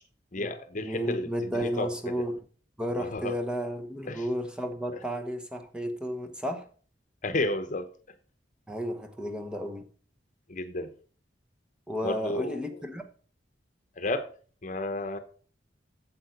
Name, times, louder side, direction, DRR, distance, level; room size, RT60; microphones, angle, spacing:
voice 1, 0.3-2.2 3.0-3.3 4.1-4.3 7.2-7.9 10.5-10.9 12.0-12.8 14.0-14.3 14.6-15.2, left 2 dB, 45° left, 10 dB, 1.0 m, -32 dB
voice 2, 0.8-2.4 2.8-6.7 8.7-9.8 11.9-13.0, equal, 5° right, 5 dB, 1.0 m, -32 dB
8.7 x 7.6 x 5.2 m, 0.41 s
head